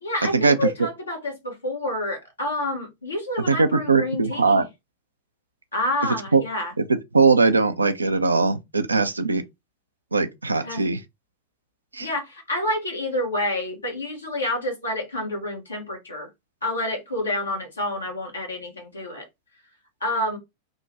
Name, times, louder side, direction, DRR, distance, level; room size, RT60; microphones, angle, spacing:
voice 1, 0.0-4.7 5.7-6.7 10.6-10.9 12.0-16.3 16.6-19.2 20.0-20.4, left 1 dB, 75° left, 1.2 m, -28 dB
voice 2, 3.5-4.6 6.3-6.4 6.8-6.9 7.1-9.4 10.1-11.0 11.9-12.1, right 4 dB, 80° right, 0.4 m, -20 dB
3.4 x 2.2 x 2.8 m
figure-of-eight pair, 90°, 0 cm